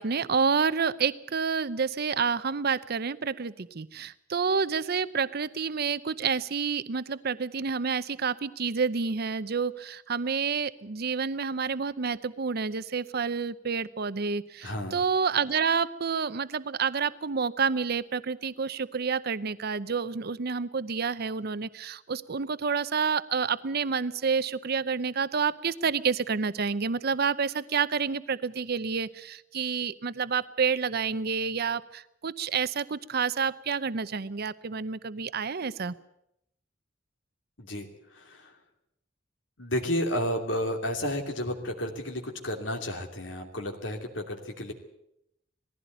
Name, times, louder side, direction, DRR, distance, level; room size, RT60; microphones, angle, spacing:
voice 1, 0.0-36.0, right 5 dB, 55° right, 15 dB, 0.7 m, -29 dB
voice 2, 14.6-15.0 37.6-38.5 39.6-44.7, left 1 dB, 80° left, 3 dB, 2.7 m, -32 dB
19.5 x 15.5 x 9.2 m, 0.80 s
head